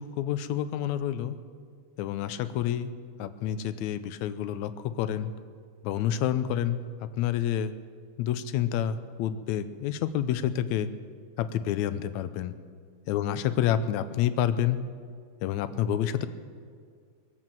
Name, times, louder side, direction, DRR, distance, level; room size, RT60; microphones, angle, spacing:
voice 1, 0.0-1.4 2.0-2.9 3.2-5.3 5.8-7.7 8.2-10.9 11.4-12.5 13.1-14.8 15.4-16.3, left 10 dB, 80° left, 12 dB, 1.9 m, -28 dB
22.5 x 8.0 x 7.7 m, 2.1 s
omnidirectional pair, 3.5 m